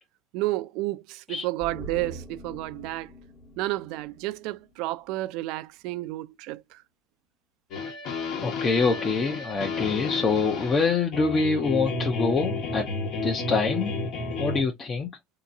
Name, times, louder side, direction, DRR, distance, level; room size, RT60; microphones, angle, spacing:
voice 1, 0.3-3.1 3.6-6.8, right 18 dB, 75° right, 0.3 m, -31 dB
sound 1, 1.6-5.0 5.3-5.4, right 1 dB, 10° left, 1.1 m, -44 dB
sound 2, 7.7-14.6, left 3 dB, 60° left, 1.2 m, -31 dB
voice 2, 8.4-14.0 14.4-15.1, left 4 dB, 30° left, 0.7 m, -25 dB
3.6 x 2.9 x 2.6 m
cardioid pair, 125°, 0 cm